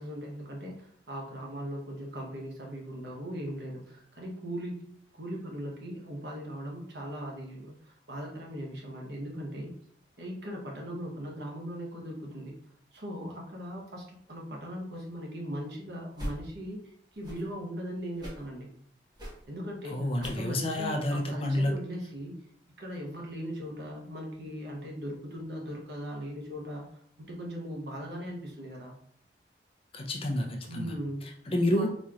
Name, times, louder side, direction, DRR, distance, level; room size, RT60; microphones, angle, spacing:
voice 1, 0.0-4.9 5.1-9.7 10.2-12.6 12.9-16.8 17.1-18.7 19.5-22.3 22.8-26.9 27.2-28.9 30.7-31.3 31.7-31.9, equal, 65° right, -1 dB, 0.9 m, -39 dB
sound 1, 16.1-16.4 17.1-17.5 18.1-18.5 19.1-19.5 20.1-20.5 21.1-21.2, equal, 25° right, 1.2 m, -40 dB
voice 2, 19.8-21.7 29.9-30.9 31.2-31.9, left 1 dB, 30° left, 2 dB, 0.5 m, -29 dB
4.2 x 3.0 x 2.4 m, 0.65 s
head